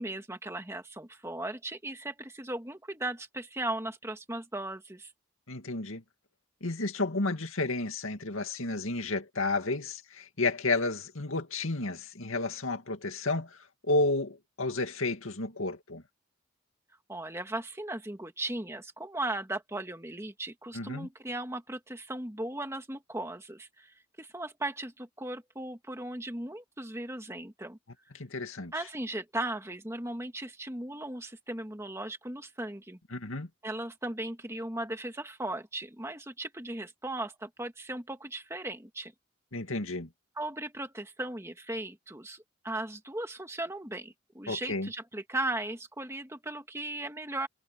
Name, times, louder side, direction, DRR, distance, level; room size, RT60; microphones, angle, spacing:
voice 1, 0.0-5.1 17.1-27.8 28.7-33.0 33.6-39.1 40.4-47.5, right 1 dB, 15° right, 1.7 m, -37 dB
voice 2, 5.5-6.0 6.6-13.6 13.8-16.0 20.7-21.1 28.1-28.7 33.1-33.5 39.5-40.1 44.5-44.9, left 2 dB, 85° left, 2.4 m, -31 dB
head